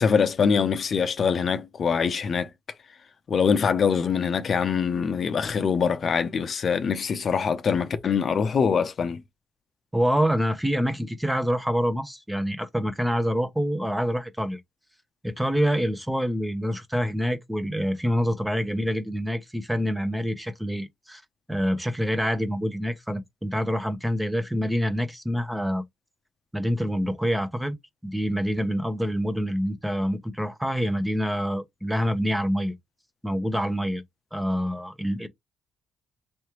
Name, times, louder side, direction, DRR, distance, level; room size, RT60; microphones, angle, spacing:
voice 1, 0.0-2.5 3.3-9.2, left 6 dB, 50° left, 0.7 m, -24 dB
voice 2, 9.9-14.6 15.2-21.2 21.5-25.8 26.5-27.8 28.0-32.7 33.2-34.0 34.3-35.3, equal, 5° right, 0.8 m, -26 dB
3.5 x 3.2 x 2.9 m
cardioid pair, 90°, 0 cm